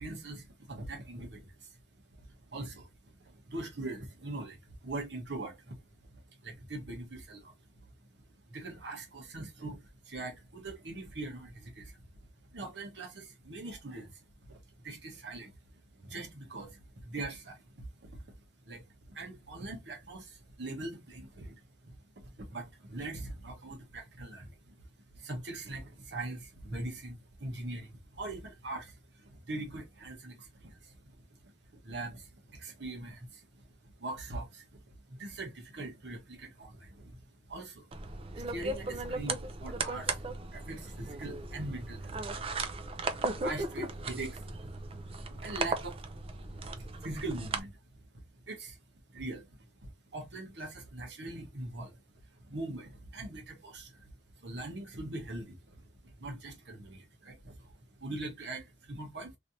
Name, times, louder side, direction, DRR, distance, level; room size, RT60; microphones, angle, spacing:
voice 1, 0.0-1.8 2.2-5.8 6.1-7.7 8.1-12.0 12.5-18.3 18.6-24.9 25.1-33.7 34.0-34.8 35.1-44.7 45.3-46.0 46.4-48.8 49.1-59.4, right 2 dB, 80° right, 1.2 m, -43 dB
sound 1, 37.9-47.6, right 3 dB, 35° right, 0.5 m, -37 dB
3.2 x 2.7 x 2.7 m
head